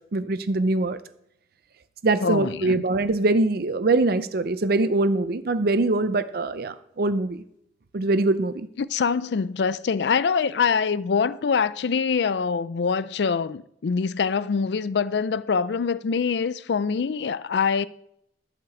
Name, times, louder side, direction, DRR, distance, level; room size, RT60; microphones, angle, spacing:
voice 1, 0.1-1.0 2.0-7.4 7.9-8.7, right 2 dB, 60° right, 0.6 m, -23 dB
voice 2, 2.2-2.8 8.8-17.9, left 5 dB, 70° left, 0.4 m, -24 dB
11.5 x 5.1 x 7.9 m
head